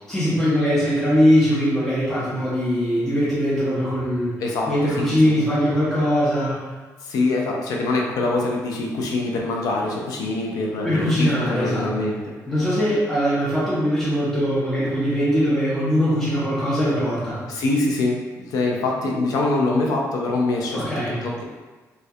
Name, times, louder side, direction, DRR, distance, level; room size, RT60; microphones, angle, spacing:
voice 1, 0.1-4.3 4.7-6.7 10.8-11.9 12.5-17.4 20.7-21.2, equal, 5° left, -10 dB, 0.5 m, -21 dB
voice 2, 4.4-5.3 7.0-12.2 17.5-18.2 18.5-20.9 21.2-21.4, left 2 dB, 80° left, -1 dB, 0.4 m, -24 dB
2.2 x 2.2 x 2.6 m, 1.3 s
cardioid pair, 140°, 6 cm